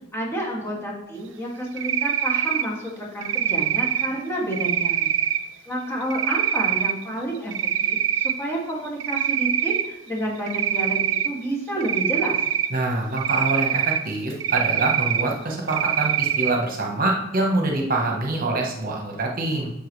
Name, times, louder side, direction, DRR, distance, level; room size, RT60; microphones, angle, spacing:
voice 1, 0.1-5.1 5.7-12.4, right 1 dB, 15° left, -4 dB, 2.2 m, -30 dB
Cricket, 1.8-2.6 3.2-4.1 4.5-5.4 6.1-6.9 7.3-8.3 8.7-9.9 10.5-11.3 11.8-12.7 13.2-14.0 14.4-15.2 15.7-16.5, right 10 dB, 70° right, 0.7 m, -23 dB
voice 2, 12.7-19.7, right 2 dB, 45° right, 0 dB, 1.1 m, -25 dB
10.0 x 6.9 x 3.2 m, 0.93 s
head